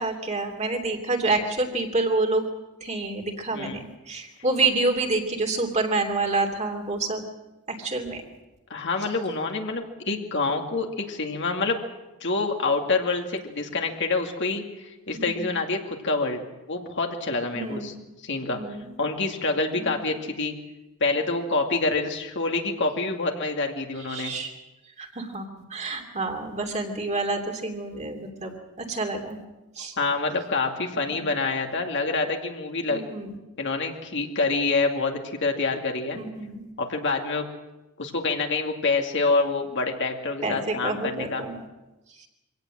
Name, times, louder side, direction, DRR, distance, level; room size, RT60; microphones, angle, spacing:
voice 1, 0.0-2.4 2.8-7.2 7.7-8.2 15.1-15.5 17.5-17.9 18.5-18.9 19.7-20.0 24.1-24.5 25.0-28.5 28.8-29.4 29.8-29.9 31.1-31.2 32.9-33.4 36.1-36.7 40.4-41.6 42.2-42.3, right 3 dB, 30° right, 3 dB, 2.8 m, -28 dB
voice 2, 3.5-3.8 8.7-11.8 12.2-17.9 18.2-18.6 19.0-20.5 21.0-24.3 30.0-33.0 33.6-36.2 36.8-37.5 38.0-41.4, left 3 dB, 55° left, 3 dB, 2.4 m, -27 dB
24.5 x 17.5 x 7.5 m, 1.0 s
head